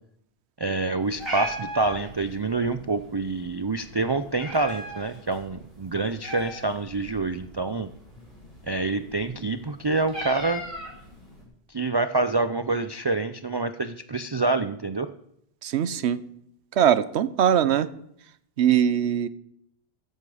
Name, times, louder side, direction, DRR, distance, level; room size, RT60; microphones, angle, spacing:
voice 1, 0.6-7.9 8.7-10.6 11.7-15.1, right 3 dB, 35° right, 11 dB, 0.4 m, -27 dB
Meow, 1.0-11.4, equal, 60° right, 5.6 m, -39 dB
voice 2, 15.6-16.2 16.7-17.9 18.6-19.3, right 9 dB, 85° right, 16 dB, 1.0 m, -21 dB
14.5 x 11.0 x 4.9 m, 0.72 s
omnidirectional pair, 1.1 m